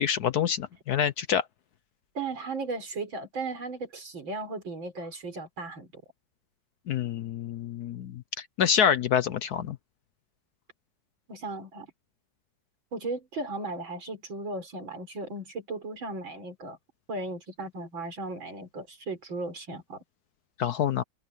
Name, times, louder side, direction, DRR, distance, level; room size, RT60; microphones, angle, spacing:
voice 1, 0.0-1.4 6.9-9.8 20.6-21.0, left 8 dB, 65° left, 1.1 m, -27 dB
voice 2, 2.2-5.9 11.3-11.9 12.9-16.8 17.1-20.0, right 3 dB, 80° right, 5.3 m, -36 dB
open air
omnidirectional pair, 2.1 m